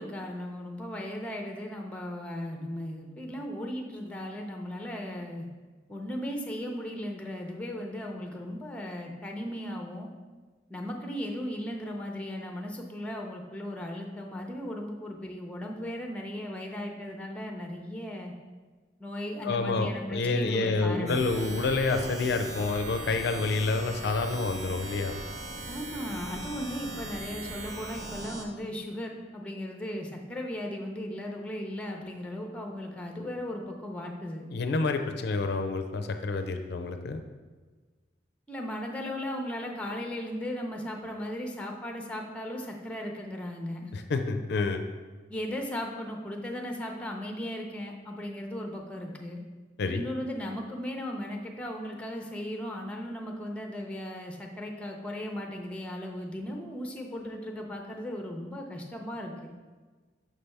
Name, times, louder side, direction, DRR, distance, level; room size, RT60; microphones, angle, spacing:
voice 1, 0.0-5.5 5.9-10.1 10.7-18.3 19.0-21.3 25.7-34.5 38.5-43.9 45.3-49.4 49.9-59.5, left 1 dB, 5° left, 2 dB, 0.6 m, -36 dB
voice 2, 19.4-25.2 34.5-37.2 43.9-44.8 49.8-50.1, left 3 dB, 60° left, 7 dB, 0.4 m, -28 dB
sound 1, 21.1-28.4, right 2 dB, 40° right, 0.7 m, -39 dB
6.3 x 3.4 x 5.4 m, 1.4 s
head